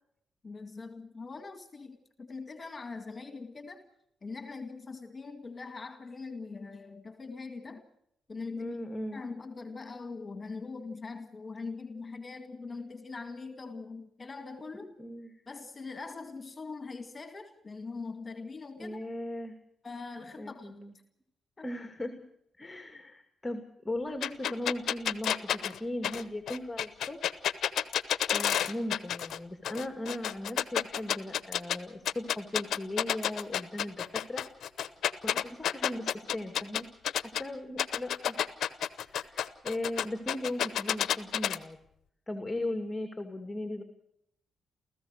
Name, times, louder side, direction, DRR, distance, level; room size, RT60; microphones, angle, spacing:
voice 1, 0.4-3.8 4.2-7.8 8.3-8.8 9.1-15.0 15.5-19.0 19.8-20.8 21.6-21.7, left 4 dB, 35° left, 7 dB, 2.1 m, -42 dB
voice 2, 8.6-9.2 15.0-15.3 18.8-19.6 20.4-20.9 21.6-22.2 22.6-27.2 28.2-34.4 35.2-36.9 37.2-38.4 39.1-41.8 42.3-43.8, left 1 dB, 20° left, 6 dB, 2.3 m, -37 dB
sound 1, 24.2-29.4 29.6-31.8 32.1-37.4 37.8-41.6, left 10 dB, 75° left, 0.9 m, -30 dB
29.0 x 14.5 x 6.5 m, 0.77 s
cardioid pair, 65°, 0 cm